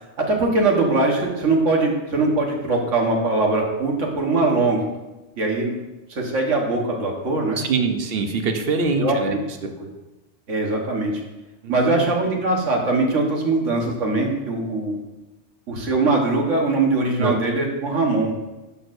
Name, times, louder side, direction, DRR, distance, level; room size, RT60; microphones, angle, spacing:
voice 1, 0.2-4.8 5.4-5.7 6.1-7.6 9.0-9.4 9.8-9.9 10.5-11.1 11.7-15.0 15.7-18.3, right 3 dB, 90° right, 0 dB, 1.7 m, -21 dB
voice 2, 7.6-9.7 11.6-12.1 17.2-17.3, right 4 dB, 55° right, 5 dB, 1.0 m, -24 dB
11.0 x 6.3 x 2.6 m, 1.1 s
omnidirectional pair, 1.2 m